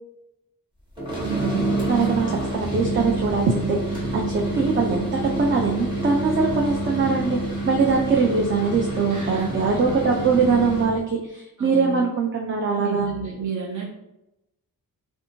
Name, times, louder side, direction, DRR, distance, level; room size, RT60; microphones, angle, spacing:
sound 1, 1.0-11.0, right 2 dB, 15° right, 1.1 m, -27 dB
voice 1, 1.2-1.8 2.0-2.1 9.1-9.6 11.6-12.0 12.8-14.0, right 5 dB, 55° right, -3 dB, 0.8 m, -31 dB
voice 2, 1.9-13.1, right 4 dB, 35° right, 0 dB, 0.4 m, -22 dB
3.3 x 2.9 x 2.7 m, 0.89 s
wide cardioid pair, 115°, 37 cm